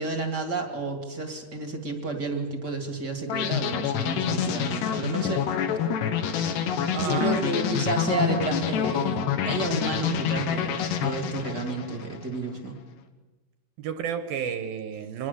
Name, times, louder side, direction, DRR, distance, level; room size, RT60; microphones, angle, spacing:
voice 1, 0.0-5.5 7.0-12.7, right 3 dB, 35° right, 4 dB, 2.1 m, -31 dB
sound 1, 3.3-12.3, left 8 dB, 90° left, 3.6 m, -27 dB
voice 2, 6.9-7.6 13.8-15.3, right 8 dB, 75° right, 9 dB, 2.6 m, -31 dB
26.0 x 20.5 x 6.8 m, 1.1 s
omnidirectional pair, 4.7 m